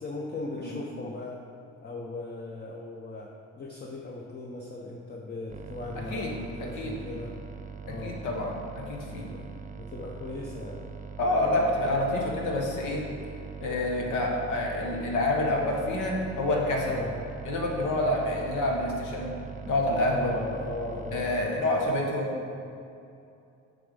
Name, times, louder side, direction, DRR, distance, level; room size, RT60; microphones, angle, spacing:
voice 1, 0.0-1.4 1.8-3.3 3.6-7.3 7.8-8.2 9.1-9.4 9.8-10.8 16.8-17.1 18.5-18.6 20.0-21.9, left 2 dB, 35° left, -1 dB, 0.7 m, -38 dB
sound 1, 5.5-21.5, right 6 dB, 25° right, 0.5 m, -42 dB
voice 2, 6.1-6.9 8.0-9.3 11.2-13.0 13.6-16.9 17.5-19.3 19.6-20.3 21.1-22.4, left 1 dB, 85° left, 0 dB, 1.2 m, -28 dB
7.6 x 3.5 x 5.1 m, 2.6 s
cardioid pair, 90°, 30 cm